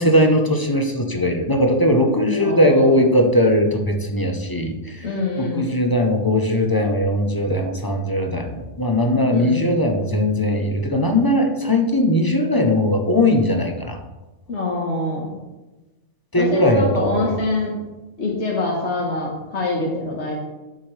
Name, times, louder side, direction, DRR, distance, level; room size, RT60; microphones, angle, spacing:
voice 1, 0.0-5.1 5.4-14.0 16.3-17.4, left 1 dB, 20° left, 3 dB, 0.7 m, -19 dB
voice 2, 2.4-2.9 5.0-5.7 9.3-9.6 14.5-15.3 16.4-17.7 18.2-20.4, left 2 dB, 65° left, -3 dB, 1.6 m, -25 dB
11.5 x 6.4 x 3.3 m, 1.1 s
omnidirectional pair, 1.2 m